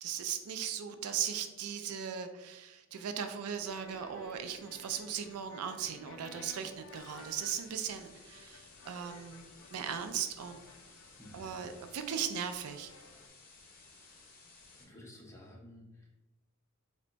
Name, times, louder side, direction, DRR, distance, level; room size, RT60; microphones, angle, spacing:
voice 1, 0.0-9.4 9.7-10.6 11.3-12.9, right 8 dB, 80° right, 8 dB, 0.4 m, -38 dB
sound 1, 3.5-13.3, left 4 dB, 65° left, 0.3 m, -56 dB
sound 2, 6.8-14.8, left 3 dB, 40° left, 0.8 m, -58 dB
voice 2, 11.2-11.7 14.0-14.3 14.8-16.2, left 1 dB, 15° left, -3 dB, 0.7 m, -54 dB
3.4 x 2.1 x 3.8 m, 1.0 s
head